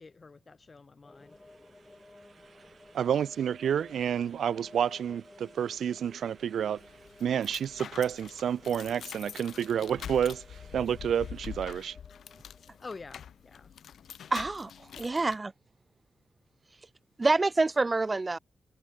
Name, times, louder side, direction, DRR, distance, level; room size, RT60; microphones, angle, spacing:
voice 1, 0.0-1.4 12.8-13.7, left 4 dB, 40° left, 3.9 m, -47 dB
sound 1, 1.0-13.5, left 2 dB, 20° left, 4.3 m, -56 dB
sound 2, 1.0-11.9, right 6 dB, 55° right, 3.3 m, -61 dB
voice 2, 2.9-6.8 7.2-12.0, right 8 dB, 85° right, 0.7 m, -29 dB
sound 3, 6.8-15.4, left 8 dB, 80° left, 2.2 m, -45 dB
voice 3, 14.3-14.7 15.0-15.5 17.2-18.4, right 3 dB, 30° right, 0.4 m, -26 dB
cardioid pair, 90°, 0 cm